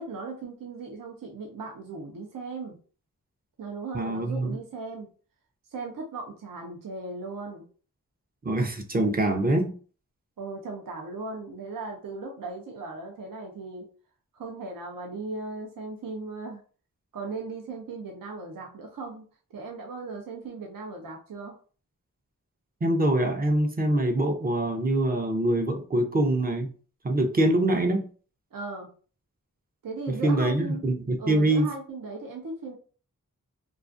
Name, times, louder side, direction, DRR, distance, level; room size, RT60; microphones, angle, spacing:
voice 1, 0.0-2.8 3.6-5.1 5.7-7.7 10.4-13.9 14.3-16.6 17.1-19.3 19.5-21.6 28.5-28.9 29.8-30.9 31.2-32.7, right 3 dB, 80° right, 0 dB, 0.6 m, -37 dB
voice 2, 3.9-4.6 8.4-9.7 22.8-26.7 27.0-28.0 30.1-31.7, right 1 dB, 30° right, 5 dB, 0.5 m, -24 dB
2.3 x 2.3 x 2.5 m, 0.39 s
wide cardioid pair, 70°, 33 cm